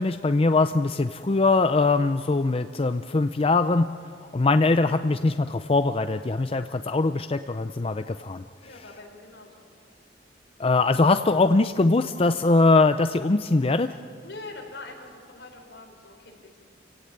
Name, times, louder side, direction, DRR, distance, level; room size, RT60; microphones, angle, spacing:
voice 1, 0.0-3.9 4.2-8.4 10.6-13.9, left 3 dB, 30° left, 9 dB, 0.5 m, -22 dB
voice 2, 8.6-9.6 14.2-16.6, left 2 dB, 70° left, 1 dB, 4.7 m, -43 dB
28.5 x 17.0 x 8.8 m, 2.2 s
head